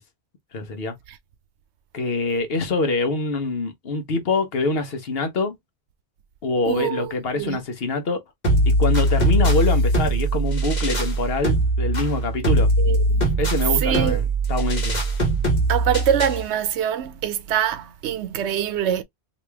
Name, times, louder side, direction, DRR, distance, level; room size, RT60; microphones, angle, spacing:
voice 1, 0.5-0.9 1.9-5.5 6.4-8.2 8.7-12.7 13.4-15.0, left 3 dB, 65° left, 1.1 m, -25 dB
voice 2, 6.7-7.6 12.8-13.3 13.8-14.2 15.7-19.0, right 9 dB, 85° right, 0.9 m, -24 dB
sound 1, 8.4-16.4, right 1 dB, 40° left, 1.3 m, -21 dB
3.0 x 2.9 x 3.3 m
omnidirectional pair, 1.1 m